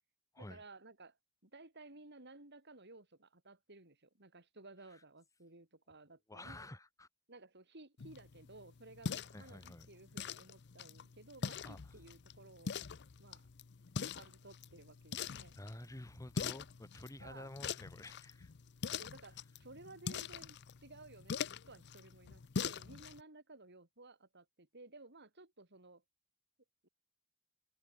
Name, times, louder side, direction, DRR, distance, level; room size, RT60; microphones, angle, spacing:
voice 1, 0.4-1.2 1.4-6.7 7.3-12.8 13.2-13.5 14.1-15.6 17.2-17.6 19.0-26.0 26.8-26.9, right 2 dB, 55° right, 5.8 m, -57 dB
voice 2, 6.3-7.1 9.3-9.9 11.6-11.8 15.6-18.5, left 1 dB, 15° left, 1.5 m, -50 dB
sound 1, 8.0-23.2, left 6 dB, 55° left, 0.6 m, -44 dB
head